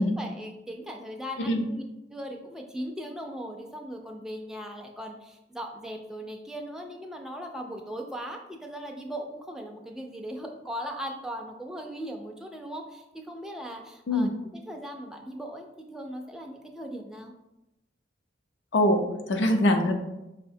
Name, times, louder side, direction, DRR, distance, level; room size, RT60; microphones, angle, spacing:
voice 1, 0.0-1.8 2.1-14.3 14.7-17.3, equal, 5° right, 1 dB, 0.3 m, -38 dB
voice 2, 18.7-20.1, left 1 dB, 85° left, 5 dB, 0.5 m, -23 dB
5.5 x 2.1 x 2.6 m, 0.94 s
head